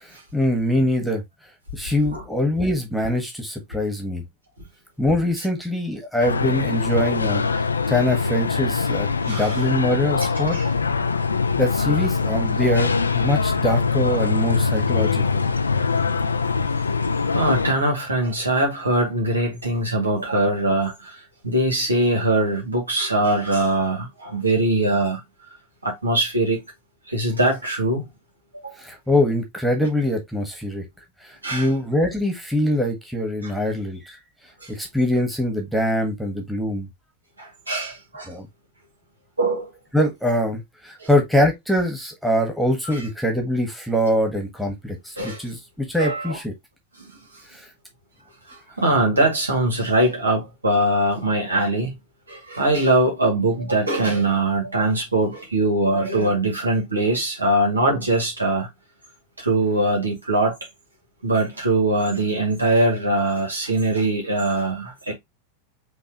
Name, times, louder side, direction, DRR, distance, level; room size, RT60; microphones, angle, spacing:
voice 1, 0.0-1.2 1.7-4.2 5.0-7.4 7.9-10.6 11.6-15.5 28.8-30.8 31.2-34.2 34.7-36.9 38.3-38.5 39.9-46.5 47.5-47.6, left 1 dB, ahead, 1.6 m, -23 dB
sound 1, 6.2-17.7, left 4 dB, 75° left, 0.4 m, -22 dB
voice 2, 9.3-9.6 10.5-10.7 17.3-25.2 25.8-26.6 27.1-28.0 28.6-28.8 31.4-31.7 33.4-33.5 37.4-38.3 39.4-39.7 41.0-41.1 42.9-43.0 45.2-45.4 46.0-46.4 47.0-47.1 48.5-51.9 52.3-58.7 59.4-60.6 61.2-65.1, right 2 dB, 80° right, 2.1 m, -22 dB
5.5 x 3.0 x 3.0 m
figure-of-eight pair, 90°, 0 cm